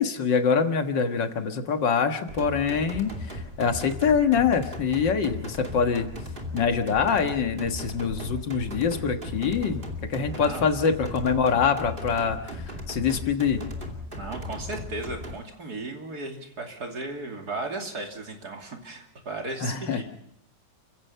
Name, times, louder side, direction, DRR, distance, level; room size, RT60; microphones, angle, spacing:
voice 1, 0.0-6.1 6.5-13.6 19.6-20.0, left 6 dB, 85° left, 6 dB, 2.2 m, -25 dB
sound 1, 2.3-15.3, left 1 dB, 30° right, 2.7 m, -37 dB
voice 2, 14.2-20.0, right 2 dB, 60° right, 2 dB, 3.4 m, -35 dB
30.0 x 16.0 x 5.7 m, 0.78 s
omnidirectional pair, 1.9 m